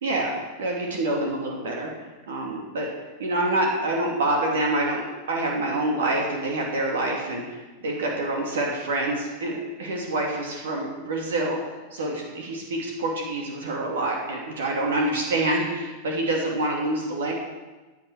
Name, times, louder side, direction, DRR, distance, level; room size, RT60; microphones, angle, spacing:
voice 1, 0.0-1.9 2.3-2.9 3.2-11.6 11.9-17.3, right 2 dB, 60° right, 0 dB, 2.6 m, -26 dB
16.0 x 9.6 x 4.9 m, 1.2 s
figure-of-eight pair, 90°, 0 cm